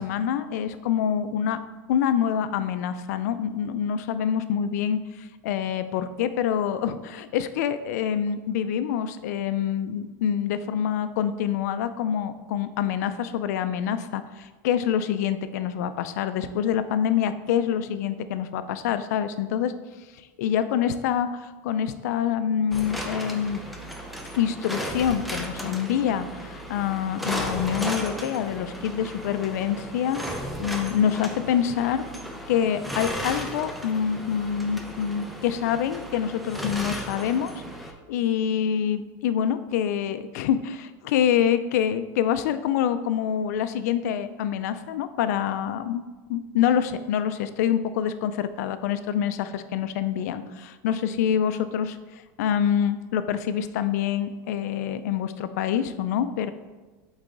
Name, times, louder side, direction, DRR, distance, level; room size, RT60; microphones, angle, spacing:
voice 1, 0.0-1.6 1.9-19.7 20.4-23.6 24.3-32.0 32.5-37.5 38.1-46.0 46.3-56.5, left 9 dB, 85° left, 11 dB, 0.5 m, -26 dB
sound 1, 22.7-37.9, equal, ahead, 0.7 m, -35 dB
8.2 x 4.0 x 3.9 m, 1.3 s
supercardioid pair, 130°, 9 cm